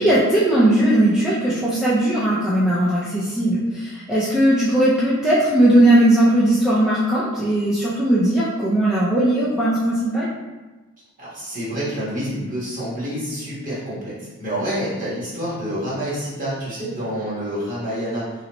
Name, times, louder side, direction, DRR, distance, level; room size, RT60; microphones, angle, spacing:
voice 1, 0.0-10.3, right 1 dB, 5° right, -10 dB, 0.4 m, -18 dB
voice 2, 11.2-18.3, equal, 35° right, -8 dB, 1.4 m, -28 dB
3.9 x 3.1 x 3.0 m, 1.2 s
head